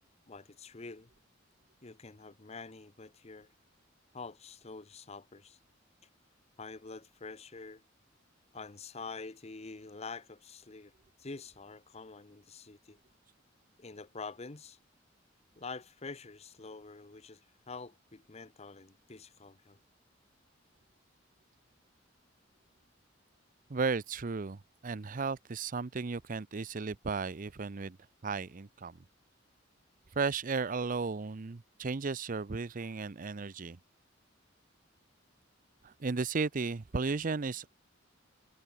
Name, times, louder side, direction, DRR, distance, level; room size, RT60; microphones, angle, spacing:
voice 1, 0.3-1.1 1.8-3.5 4.1-5.6 6.6-7.8 8.5-10.9 11.2-13.0 13.8-14.8 15.6-19.8, left 4 dB, 35° left, 0.9 m, -46 dB
voice 2, 23.7-28.0 28.2-29.0 30.2-33.8 35.8-37.7, right 4 dB, 45° right, 0.6 m, -34 dB
head